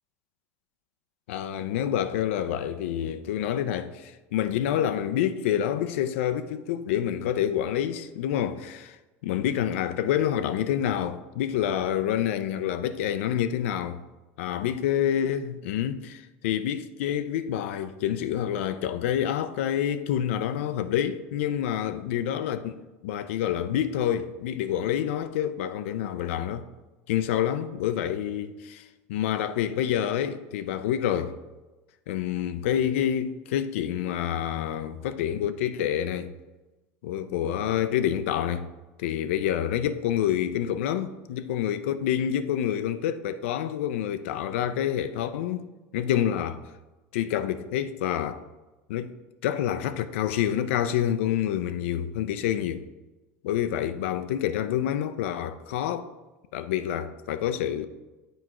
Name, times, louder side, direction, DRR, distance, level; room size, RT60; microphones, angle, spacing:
voice 1, 1.3-9.0 9.2-14.0 14.4-26.7 27.1-31.4 32.1-36.3 37.0-38.7 39.0-46.6 47.1-48.4 48.9-49.1 49.4-52.8 53.4-56.1 56.5-57.9, left 10 dB, 85° left, 0.4 m, -27 dB
7.7 x 4.6 x 3.0 m
supercardioid pair, 105°, 7 cm